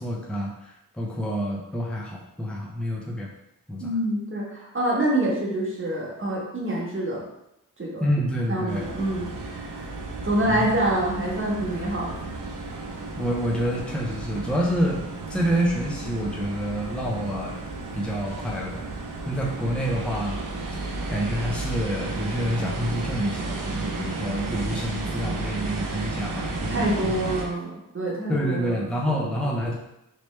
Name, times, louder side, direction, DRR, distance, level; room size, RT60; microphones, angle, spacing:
voice 1, 0.0-3.3 3.7-3.9 8.0-8.9 10.5-10.7 13.2-15.0 15.3-17.7 17.9-18.8 19.3-20.4 20.7-20.8 21.1-27.1 28.3-29.7, equal, 5° left, -3 dB, 0.6 m, -28 dB
voice 2, 3.8-7.2 7.8-8.0 8.5-9.8 10.2-12.3 26.7-29.2, right 1 dB, 35° right, -3 dB, 1.1 m, -27 dB
sound 1, 8.7-27.4, right 3 dB, 65° right, 0.7 m, -33 dB
3.2 x 3.0 x 3.2 m, 0.84 s
wide cardioid pair, 75°, 35 cm